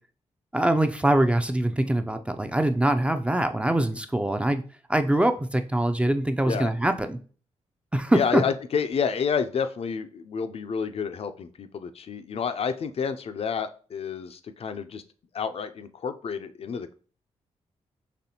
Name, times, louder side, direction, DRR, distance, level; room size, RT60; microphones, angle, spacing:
voice 1, 0.5-4.6 4.9-7.2 7.9-8.4, right 1 dB, 10° right, 7 dB, 0.4 m, -23 dB
voice 2, 8.1-15.0 15.3-16.9, left 6 dB, 55° left, 10 dB, 0.4 m, -29 dB
4.2 x 3.1 x 2.8 m, 0.40 s
cardioid pair, 60°, 12 cm